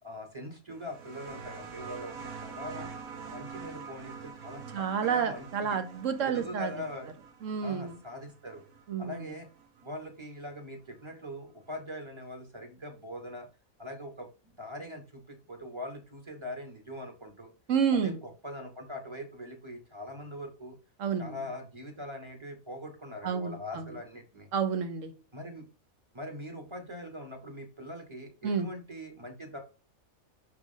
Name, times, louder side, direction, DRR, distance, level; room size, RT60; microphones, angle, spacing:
voice 1, 0.0-2.9 3.2-5.8 6.2-7.1 7.6-8.6 9.0-9.5 9.8-13.5 13.8-17.5 18.0-20.8 21.2-24.5 25.3-25.7 26.1-29.6, left 1 dB, 20° right, 3 dB, 1.1 m, -42 dB
sound 1, 0.7-10.0 11.1-11.2, right 5 dB, 85° right, 1.3 m, -46 dB
voice 2, 4.7-6.7 7.4-8.0 8.9-9.3 17.7-18.2 21.0-21.4 23.2-23.8 24.5-25.1 28.4-28.7, right 7 dB, 65° right, 8 dB, 1.2 m, -30 dB
6.0 x 3.3 x 5.4 m, 0.34 s
omnidirectional pair, 1.4 m